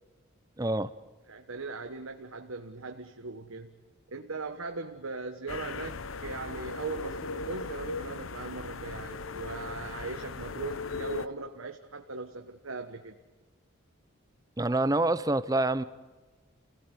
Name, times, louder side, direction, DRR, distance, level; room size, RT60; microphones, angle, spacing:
voice 1, 0.6-0.9 14.6-15.8, right 2 dB, 15° right, 15 dB, 0.7 m, -26 dB
voice 2, 1.3-3.7 4.1-13.2, right 3 dB, 90° right, 5 dB, 1.4 m, -39 dB
sound 1, 5.5-11.3, left 4 dB, 80° left, 0.9 m, -38 dB
29.0 x 17.5 x 9.3 m, 1.3 s
head